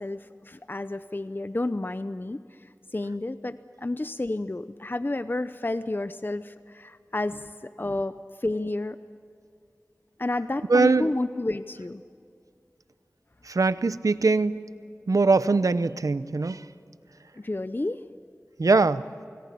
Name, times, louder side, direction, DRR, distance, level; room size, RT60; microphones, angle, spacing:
voice 1, 0.0-2.4 2.9-8.1 8.4-9.0 10.2-12.0 17.3-18.0, left 2 dB, 35° left, 11 dB, 0.7 m, -30 dB
voice 2, 10.7-11.1 13.4-14.7 15.1-16.6 18.6-19.0, right 3 dB, 90° right, 14 dB, 0.7 m, -22 dB
29.0 x 19.5 x 8.5 m, 2.5 s
wide cardioid pair, 50°, 6 cm